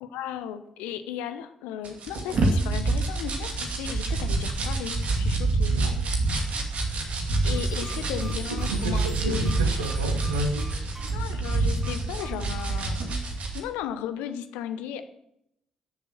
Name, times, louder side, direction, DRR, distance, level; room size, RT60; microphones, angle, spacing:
voice 1, 0.0-5.7 7.4-9.6 11.0-13.2 13.5-15.1, left 10 dB, 70° left, 10 dB, 0.9 m, -35 dB
sound 1, 1.8-13.6, right 3 dB, 55° right, 2.5 m, -27 dB
voice 2, 5.7-6.0 6.3-6.4 8.7-10.7, right 2 dB, 85° right, 6 dB, 1.0 m, -31 dB
sound 2, 7.5-12.6, right 2 dB, 15° right, 1.8 m, -45 dB
13.5 x 7.0 x 7.6 m, 0.81 s
figure-of-eight pair, 40°, 3 cm